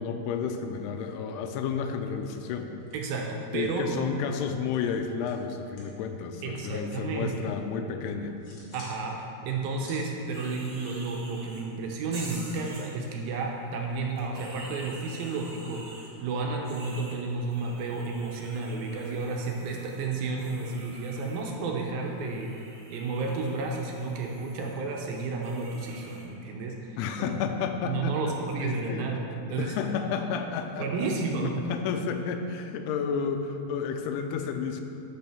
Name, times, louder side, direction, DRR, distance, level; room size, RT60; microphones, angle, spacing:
voice 1, 0.0-2.7 3.5-8.3 27.0-28.3 28.6-29.1 29.6-31.1 31.7-34.8, left 6 dB, 90° left, 6 dB, 2.7 m, -31 dB
sound 1, 2.2-3.5 3.7-6.0 6.3-7.6 8.0-9.0 9.3-11.5, left 2 dB, 50° left, 3.1 m, -54 dB
voice 2, 2.9-4.1 6.4-7.3 8.7-27.4 27.8-29.7 30.8-31.5, right 3 dB, 75° right, 0 dB, 2.5 m, -32 dB
sound 2, 10.3-11.6 12.1-13.3 14.1-16.1 16.6-21.5 22.0-26.2, right 2 dB, 50° right, 1.4 m, -47 dB
8.7 x 6.3 x 6.0 m, 2.8 s
omnidirectional pair, 4.6 m